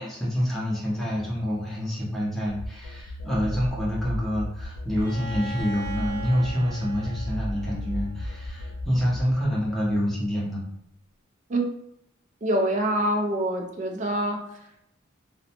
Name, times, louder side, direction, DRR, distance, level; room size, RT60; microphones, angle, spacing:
voice 1, 0.0-10.6, equal, ahead, -6 dB, 0.7 m, -27 dB
sound 1, 2.5-10.1, left 1 dB, 80° left, 0.4 m, -35 dB
Bowed string instrument, 5.0-8.7, right 2 dB, 75° right, 0.6 m, -40 dB
voice 2, 12.4-14.4, right 1 dB, 35° right, 2 dB, 0.4 m, -25 dB
2.5 x 2.1 x 2.8 m, 0.79 s
head